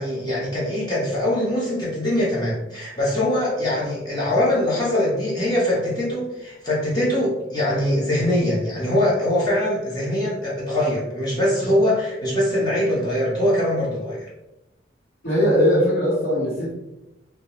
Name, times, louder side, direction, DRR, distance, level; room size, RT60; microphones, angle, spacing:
voice 1, 0.0-14.3, left 1 dB, 20° left, -6 dB, 0.7 m, -22 dB
voice 2, 15.2-16.7, equal, 85° left, -12 dB, 1.1 m, -19 dB
2.3 x 2.1 x 2.8 m, 0.95 s
head